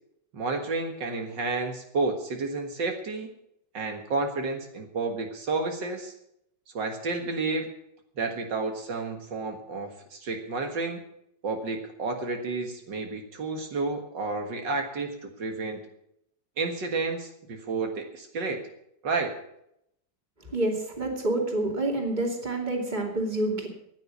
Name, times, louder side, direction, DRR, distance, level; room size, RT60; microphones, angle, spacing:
voice 1, 0.3-3.3 3.7-6.1 6.7-7.7 8.2-11.0 11.4-15.8 16.6-18.6 19.0-19.4, right 3 dB, 75° right, 3 dB, 2.4 m, -31 dB
voice 2, 20.5-23.7, right 2 dB, 25° right, 1 dB, 2.8 m, -28 dB
15.0 x 9.9 x 6.9 m, 0.75 s
omnidirectional pair, 2.0 m